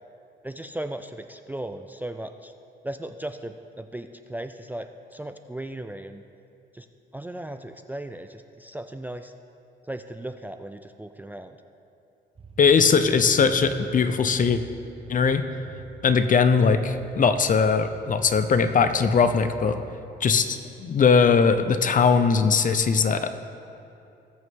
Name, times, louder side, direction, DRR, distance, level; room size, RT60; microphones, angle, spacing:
voice 1, 0.4-2.5 2.8-6.2 6.7-6.9 7.1-9.3 9.8-11.6, right 1 dB, 10° right, 8 dB, 0.4 m, -37 dB
sound 1, 12.4-19.9, right 4 dB, 30° right, 1.1 m, -46 dB
voice 2, 12.6-14.6 15.1-15.4 16.0-19.8 20.2-23.3, left 5 dB, 40° left, 10 dB, 0.7 m, -20 dB
19.5 x 6.5 x 3.7 m, 2.7 s
cardioid pair, 90°, 20 cm